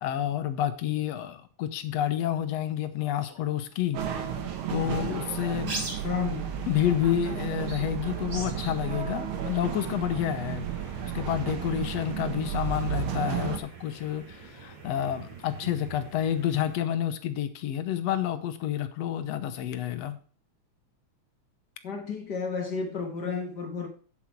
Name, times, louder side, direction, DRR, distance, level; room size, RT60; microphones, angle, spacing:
voice 1, 0.0-4.0 4.7-5.9 6.7-10.7 11.1-20.2, left 11 dB, 70° left, 1.8 m, -29 dB
sound 1, 3.9-13.6, right 8 dB, 55° right, 1.7 m, -33 dB
sound 2, 4.2-16.8, right 3 dB, 40° right, 2.7 m, -44 dB
voice 2, 6.0-6.6 21.8-23.9, left 5 dB, 45° left, 1.6 m, -32 dB
8.8 x 7.7 x 4.5 m
omnidirectional pair, 3.5 m